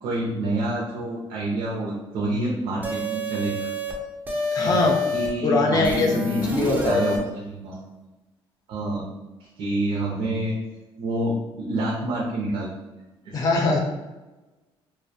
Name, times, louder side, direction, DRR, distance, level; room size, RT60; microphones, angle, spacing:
voice 1, 0.0-3.7 4.3-4.8 5.1-7.9 8.7-9.1 9.4-10.6 11.0-12.7 13.2-13.4, right 1 dB, 80° right, -3 dB, 0.5 m, -28 dB
sound 1, 2.8-3.9 4.3-5.3 5.8-7.2, left 1 dB, 15° right, 0.4 m, -27 dB
voice 2, 4.5-5.0 5.4-6.2 6.5-7.1 13.3-13.8, left 2 dB, 40° left, 1 dB, 0.5 m, -22 dB
2.4 x 2.0 x 2.6 m, 1.1 s
cardioid pair, 170°, 10 cm